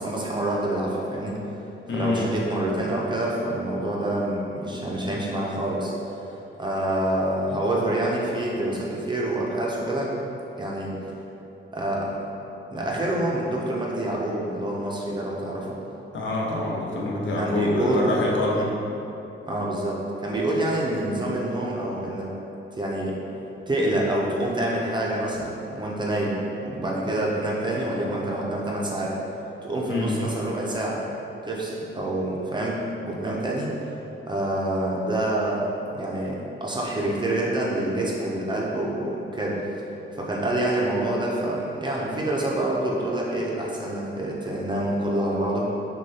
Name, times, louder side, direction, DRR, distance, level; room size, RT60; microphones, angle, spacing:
voice 1, 0.0-1.4 1.9-6.3 6.6-10.1 10.6-11.0 11.7-12.2 12.7-15.8 17.4-18.1 18.4-18.7 19.4-22.3 22.7-23.2 23.7-29.1 29.6-31.0 31.4-32.8 33.0-33.7 34.3-35.7 35.9-39.6 40.1-45.7, right 1 dB, 20° right, -4 dB, 0.5 m, -27 dB
voice 2, 1.9-2.3 16.1-18.6 29.9-30.2, left 2 dB, 65° left, -4 dB, 0.7 m, -26 dB
6.1 x 2.3 x 2.7 m, 2.9 s
wide cardioid pair, 160°, 21 cm